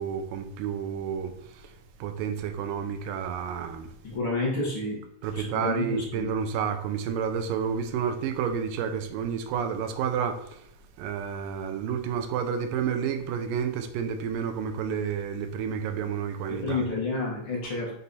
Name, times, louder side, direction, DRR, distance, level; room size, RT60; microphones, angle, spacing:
voice 1, 0.0-1.7 2.0-3.9 5.2-10.6 11.0-16.9, right 7 dB, 80° right, 2.1 m, -30 dB
voice 2, 4.0-5.0 5.3-6.3 16.5-17.9, left 2 dB, 45° left, 1.8 m, -30 dB
6.8 x 4.2 x 4.2 m
omnidirectional pair, 4.6 m